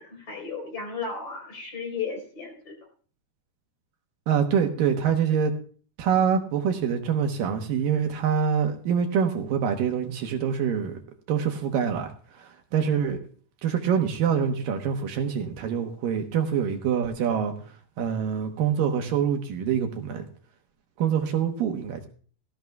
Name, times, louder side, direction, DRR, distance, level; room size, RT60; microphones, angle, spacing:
voice 1, 0.0-2.7, left 5 dB, 40° left, 2 dB, 5.0 m, -34 dB
voice 2, 4.3-5.5 6.0-11.0 11.3-13.2 13.6-20.3 21.0-22.0, right 7 dB, 70° right, 4 dB, 2.6 m, -25 dB
18.0 x 14.5 x 2.3 m, 0.43 s
omnidirectional pair, 4.3 m